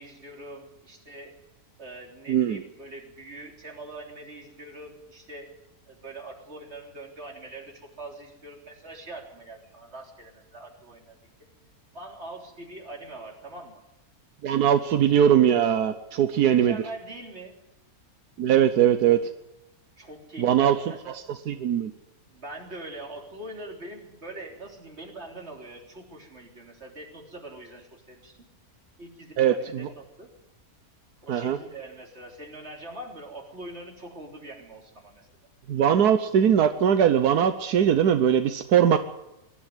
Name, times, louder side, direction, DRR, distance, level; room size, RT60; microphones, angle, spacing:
voice 1, 0.0-1.3 1.8-5.5 5.9-11.3 11.9-13.8 16.4-17.5 20.0-21.2 22.3-28.4 29.0-30.3 31.2-35.3, right 2 dB, 45° right, 1 dB, 3.8 m, -43 dB
voice 2, 2.3-2.6 14.4-16.8 18.4-19.2 20.4-20.8 21.5-21.9 29.4-29.9 31.3-31.6 35.7-39.0, right 9 dB, 85° right, 9 dB, 1.5 m, -21 dB
22.0 x 12.5 x 9.4 m, 0.90 s
omnidirectional pair, 1.6 m